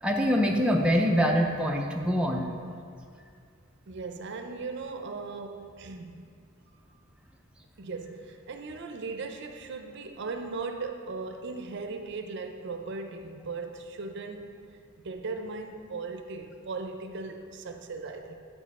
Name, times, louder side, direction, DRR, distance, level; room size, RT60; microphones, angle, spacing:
voice 1, 0.0-2.5, equal, 5° right, 0 dB, 0.4 m, -24 dB
voice 2, 3.9-6.2 7.8-14.5 15.0-18.3, right 4 dB, 55° right, 6 dB, 0.5 m, -38 dB
8.3 x 5.3 x 4.2 m, 2.2 s
head